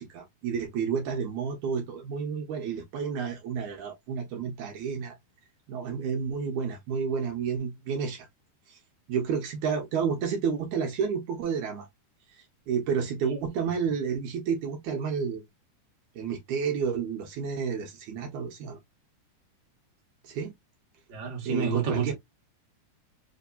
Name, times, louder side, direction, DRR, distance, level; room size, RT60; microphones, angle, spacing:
voice 1, 0.0-5.2 5.7-8.3 8.7-8.8 9.1-11.9 12.3-15.4 16.2-18.8 20.2-20.5 21.4-22.1, right 6 dB, 75° right, 2.2 m, -30 dB
voice 2, 21.1-22.1, right 5 dB, 40° right, 1.8 m, -28 dB
5.0 x 2.8 x 2.3 m
omnidirectional pair, 3.6 m